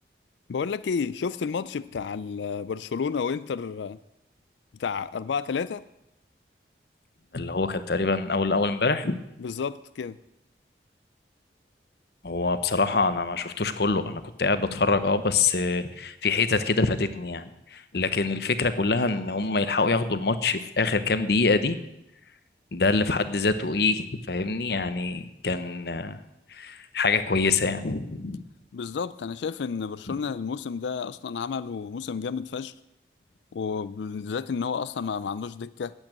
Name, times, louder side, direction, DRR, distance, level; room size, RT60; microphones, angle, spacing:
voice 1, 0.5-4.0 4.8-5.8 9.4-10.2 28.7-32.8 33.5-35.9, left 5 dB, 80° left, 16 dB, 0.4 m, -31 dB
voice 2, 7.3-9.2 12.2-17.4 17.7-21.8 22.7-26.2 26.5-28.4, left 3 dB, 65° left, 11 dB, 0.8 m, -25 dB
8.9 x 8.4 x 8.8 m, 0.87 s
head